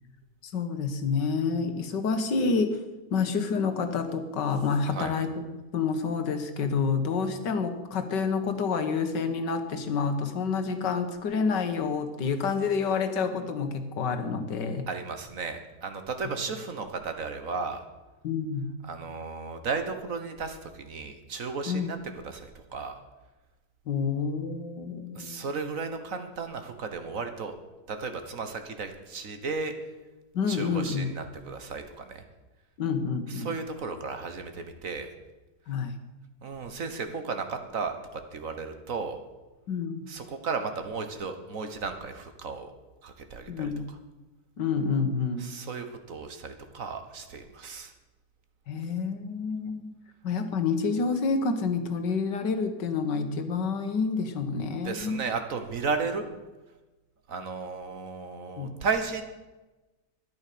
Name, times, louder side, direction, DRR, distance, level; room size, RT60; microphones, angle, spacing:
voice 1, 0.4-2.8 3.1-5.3 5.7-14.9 18.2-18.7 21.7-21.9 23.9-25.5 30.3-31.1 32.8-33.5 35.7-36.0 39.7-40.1 43.5-43.9 44.6-45.5 48.7-49.9 50.2-55.2 58.6-58.7, left 5 dB, 85° left, 8 dB, 1.9 m, -28 dB
voice 2, 14.9-17.8 18.8-22.0 22.2-23.0 25.1-27.5 27.9-29.7 30.5-32.2 33.3-35.1 36.4-39.2 40.1-42.7 43.0-43.7 45.4-47.9 54.8-56.3 57.3-59.2, right 4 dB, 55° right, 8 dB, 1.6 m, -34 dB
13.0 x 10.5 x 6.8 m, 1.1 s
omnidirectional pair, 1.8 m